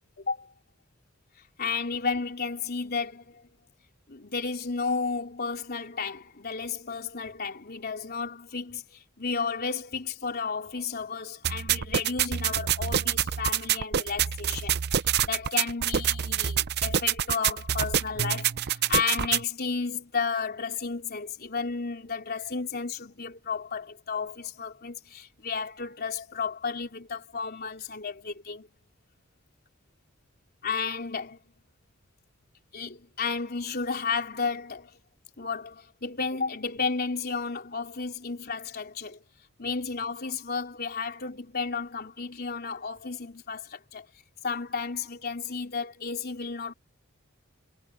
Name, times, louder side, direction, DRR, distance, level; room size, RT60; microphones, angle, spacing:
voice 1, 0.2-0.5 1.6-3.5 4.1-28.7 30.6-31.4 32.7-35.0 35.4-39.2 39.6-44.1 44.4-46.7, left 5 dB, 50° left, 3.5 m, -33 dB
sound 1, 11.4-19.4, right 9 dB, 50° right, 0.6 m, -27 dB
head